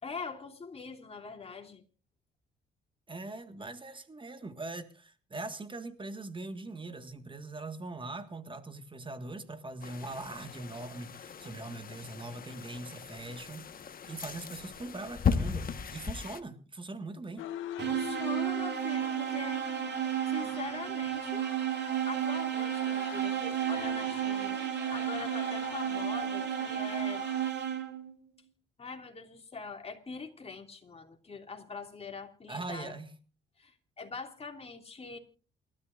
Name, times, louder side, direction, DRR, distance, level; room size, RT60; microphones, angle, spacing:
voice 1, 0.0-1.8 17.8-19.7 20.2-21.5 22.1-24.6 24.9-27.3 28.8-33.0 33.6-35.2, left 4 dB, 30° left, 3.0 m, -43 dB
voice 2, 3.1-17.5 32.5-33.1, right 2 dB, 25° right, 1.7 m, -41 dB
sound 1, 9.8-16.4, left 6 dB, 45° left, 1.5 m, -36 dB
sound 2, 17.4-27.5, left 12 dB, 85° left, 1.5 m, -44 dB
sound 3, 17.8-28.1, right 10 dB, 60° right, 2.7 m, -32 dB
28.0 x 12.5 x 2.6 m
cardioid pair, 90°, 20 cm